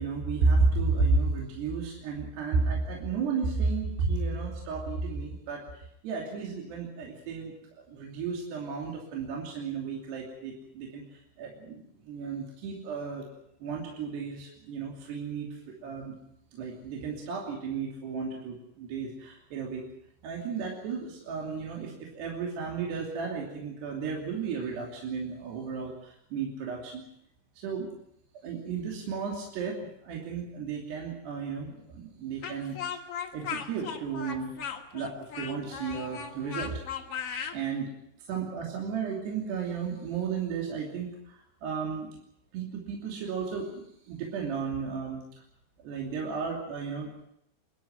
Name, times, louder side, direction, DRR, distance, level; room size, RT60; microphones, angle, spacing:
voice 1, 0.0-13.2 13.6-16.1 16.5-19.9 20.2-27.0 27.6-27.9 28.3-32.8 33.3-34.5 34.9-36.8 37.5-37.9 38.2-42.1 42.5-45.2 45.8-47.2, right 4 dB, 65° right, -1 dB, 4.9 m, -33 dB
Speech, 32.4-37.6, left 7 dB, 75° left, 1.3 m, -37 dB
27.5 x 12.5 x 9.3 m, 0.78 s
omnidirectional pair, 5.5 m